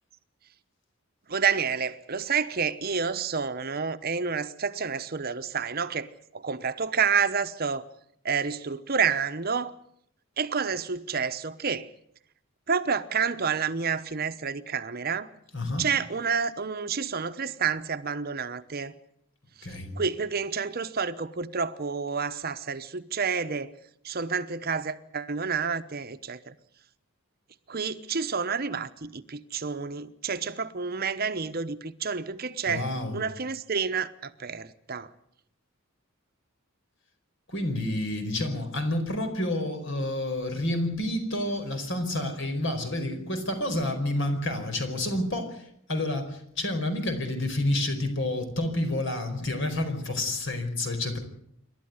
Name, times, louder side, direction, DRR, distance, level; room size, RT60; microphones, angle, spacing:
voice 1, 1.3-6.1 6.3-7.8 8.2-9.7 10.4-11.9 12.7-15.3 15.8-18.9 20.0-23.7 24.0-26.5 27.7-32.9 33.1-35.1, right 6 dB, 45° right, 1.0 m, -29 dB
voice 2, 15.5-15.9 19.6-19.9 32.7-33.2 37.5-51.2, left 1 dB, 60° left, 4.8 m, -29 dB
27.5 x 12.5 x 9.7 m
head